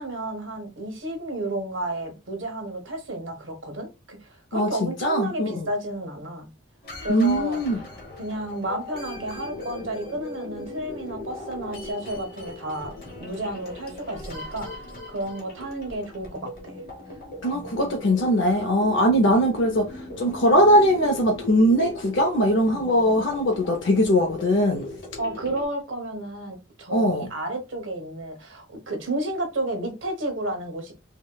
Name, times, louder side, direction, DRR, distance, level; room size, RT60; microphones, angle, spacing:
voice 1, 0.0-6.5 7.0-7.6 8.2-14.7 15.1-16.8 25.2-30.9, right 1 dB, 80° right, 1.0 m, -32 dB
voice 2, 4.5-5.7 7.1-7.8 17.4-24.9 26.9-27.3, equal, 75° left, 0.5 m, -21 dB
sound 1, 6.8-25.7, left 2 dB, 50° left, 0.9 m, -39 dB
3.5 x 2.1 x 2.3 m
head